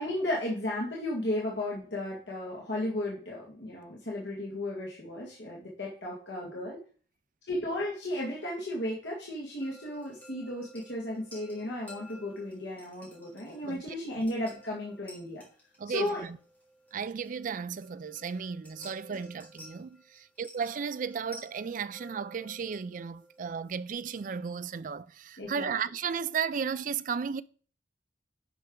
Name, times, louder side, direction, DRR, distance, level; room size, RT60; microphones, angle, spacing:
voice 1, 0.0-6.8 7.5-15.4 15.9-16.2 19.1-19.2 25.4-25.7, left 1 dB, 65° left, 1.9 m, -34 dB
sound 1, 9.6-24.5, equal, 10° left, 2.8 m, -54 dB
voice 2, 13.6-14.0 15.8-16.4 16.9-27.4, right 6 dB, 45° right, 0.3 m, -34 dB
10.5 x 5.6 x 3.8 m
head